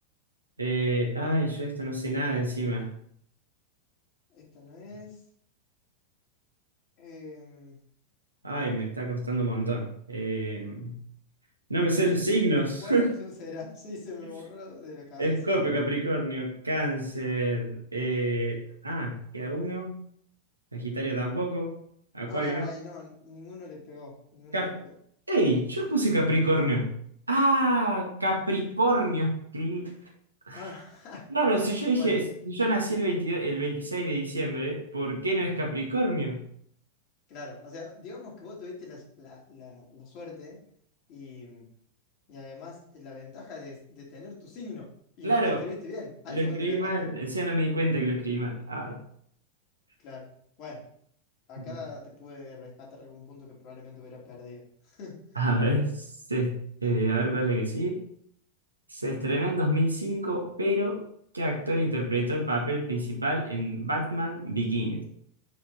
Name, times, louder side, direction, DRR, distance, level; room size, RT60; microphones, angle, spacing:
voice 1, 0.6-2.9 8.4-11.0 11.7-13.1 15.2-19.9 20.7-21.7 22.1-22.7 24.5-24.7 25.3-26.9 27.3-29.9 30.5-30.6 31.3-36.4 45.2-45.6 46.3-49.0 51.7-51.8 55.3-58.0 58.9-61.0 61.3-65.0, right 1 dB, 80° right, 0 dB, 1.9 m, -27 dB
voice 2, 4.3-5.2 7.0-7.8 11.9-12.4 12.8-15.5 22.3-24.9 30.5-31.3 31.5-32.2 37.3-40.6 41.1-41.7 42.3-44.9 45.2-47.1 50.0-50.3 50.6-50.9 51.5-55.2, left 3 dB, 40° left, -3 dB, 3.3 m, -43 dB
9.3 x 4.9 x 4.3 m, 0.65 s
figure-of-eight pair, 90°, 0 cm